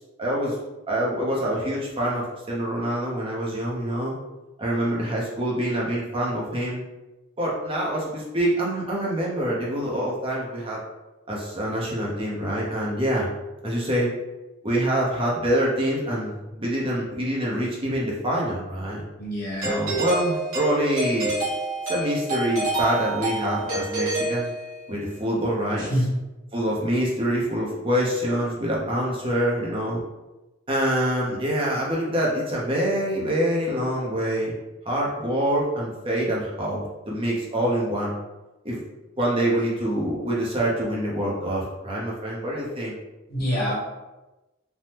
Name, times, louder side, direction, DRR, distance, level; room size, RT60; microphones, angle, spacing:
voice 1, 0.2-0.6 0.9-4.1 4.6-6.8 7.4-10.8 11.3-13.3 13.6-14.1 14.6-19.0 19.6-21.4 21.9-24.5 24.9-26.1 26.5-30.0 30.7-34.5 34.9-38.1 38.6-38.8 39.2-42.9, right 1 dB, 25° right, -4 dB, 0.6 m, -25 dB
voice 2, 19.2-19.7 25.9-26.1 43.3-43.7, equal, 45° left, -6 dB, 1.1 m, -25 dB
Doorbell, 19.6-25.0, right 2 dB, 75° right, 1.2 m, -28 dB
3.3 x 2.1 x 2.8 m, 1.1 s
head